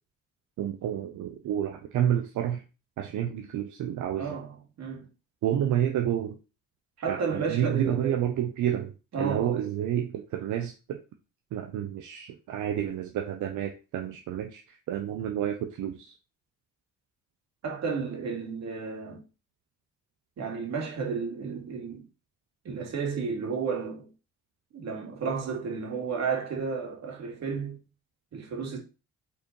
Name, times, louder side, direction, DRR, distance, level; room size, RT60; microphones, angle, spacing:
voice 1, 0.6-2.6 3.0-4.4 5.4-6.4 7.1-11.0 11.5-16.1, right 10 dB, 80° right, 0.9 m, -30 dB
voice 2, 4.2-5.1 7.0-8.3 9.1-9.6 17.6-19.2 20.4-22.0 22.6-24.1 24.7-27.8 28.3-28.8, right 5 dB, 60° right, 2.8 m, -32 dB
5.7 x 4.3 x 4.6 m
cardioid pair, 90°, 30 cm